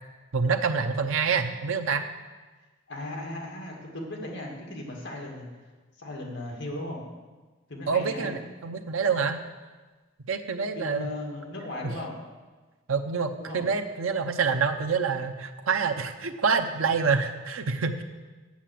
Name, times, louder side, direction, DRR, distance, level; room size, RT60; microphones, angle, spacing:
voice 1, 0.3-2.0 7.9-9.4 10.3-11.1 11.8-11.9 12.9-18.0, right 5 dB, 75° right, 6 dB, 0.8 m, -27 dB
voice 2, 2.9-5.5 6.0-7.0 7.7-8.4 10.7-12.2 13.4-13.7 16.8-17.0, left 1 dB, 60° left, -1 dB, 2.2 m, -37 dB
8.6 x 7.4 x 7.6 m, 1.3 s
head